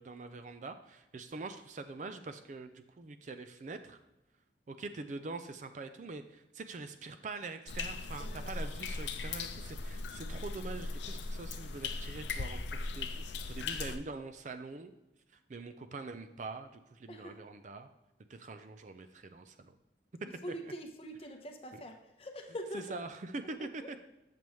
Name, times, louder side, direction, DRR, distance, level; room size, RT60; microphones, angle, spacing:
voice 1, 0.0-4.0 4.7-14.9 15.5-17.9 18.3-19.7 22.7-24.0, right 3 dB, 40° right, 8 dB, 0.4 m, -44 dB
sound 1, 7.7-14.0, left 3 dB, 80° left, 0.5 m, -39 dB
voice 2, 8.2-8.5 17.1-17.5 20.4-23.0 23.6-23.7, right 1 dB, 30° left, 4 dB, 0.8 m, -44 dB
7.5 x 6.9 x 3.1 m, 0.94 s
head